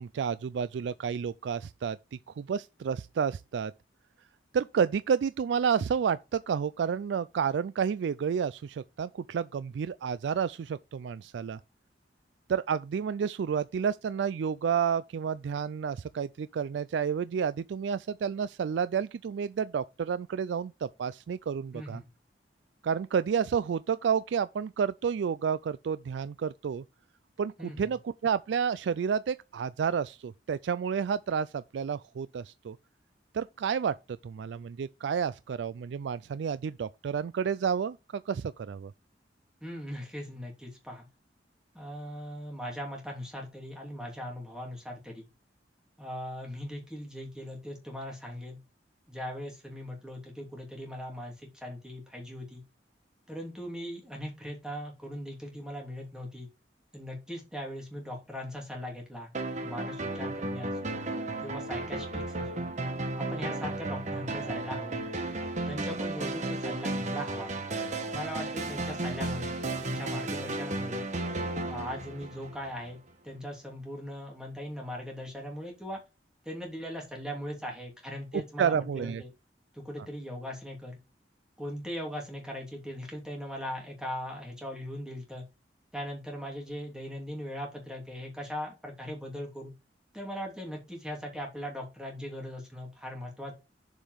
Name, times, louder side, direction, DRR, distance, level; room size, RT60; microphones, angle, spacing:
voice 1, 0.0-2.0 2.4-3.7 4.5-11.6 12.5-22.0 22.8-26.8 27.4-32.8 33.3-38.9 78.3-79.2, right 7 dB, 80° right, 0.3 m, -30 dB
voice 2, 21.7-22.1 27.6-27.8 39.6-41.1 41.7-45.2 46.0-48.6 49.1-52.6 53.3-56.5 56.9-59.3 59.6-60.9 61.4-62.7 63.2-65.1 65.6-67.5 68.1-71.0 71.6-73.0 73.2-76.0 76.4-79.3 79.7-81.0 81.6-85.4 85.9-89.7 90.1-93.5, equal, 5° right, 2.9 m, -39 dB
sound 1, 59.3-72.9, right 2 dB, 40° right, 1.2 m, -34 dB
7.1 x 5.5 x 5.0 m
head